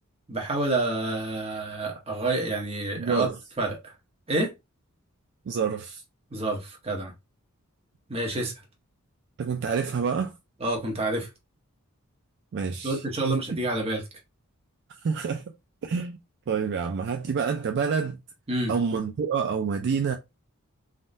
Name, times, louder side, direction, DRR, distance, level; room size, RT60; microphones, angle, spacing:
voice 1, 0.3-3.3 3.6-3.9 4.3-4.5 6.3-7.1 8.1-8.5 10.6-11.3 12.8-14.0 18.5-18.7, right 2 dB, 25° right, 0.9 m, -28 dB
voice 2, 3.0-3.4 5.5-6.0 9.4-10.3 12.5-13.6 14.9-15.4 15.8-16.2 16.5-18.2 18.7-20.2, right 6 dB, 55° right, 0.4 m, -28 dB
3.5 x 2.2 x 2.5 m
head